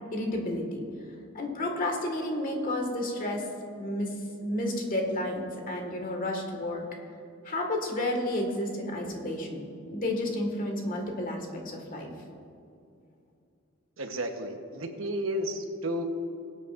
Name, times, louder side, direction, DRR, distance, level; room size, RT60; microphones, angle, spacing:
voice 1, 0.1-0.8 1.3-3.4 3.8-4.2 4.4-6.8 7.4-12.1, left 1 dB, 45° left, 2 dB, 1.8 m, -31 dB
voice 2, 14.0-16.0, equal, 75° right, 5 dB, 1.1 m, -32 dB
21.0 x 8.8 x 2.5 m, 2.5 s
head